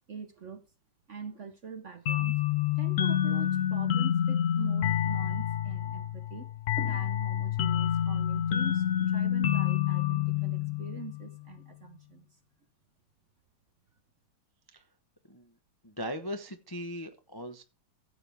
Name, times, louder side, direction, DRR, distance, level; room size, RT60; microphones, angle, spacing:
voice 1, 0.1-0.6 1.1-2.4 2.7-6.5 6.8-12.4, right 5 dB, 50° right, 0.9 m, -43 dB
sound 1, 2.1-11.4, left 10 dB, 60° left, 0.8 m, -28 dB
voice 2, 15.8-17.6, equal, 25° left, 0.5 m, -39 dB
15.5 x 7.9 x 3.5 m
omnidirectional pair, 2.2 m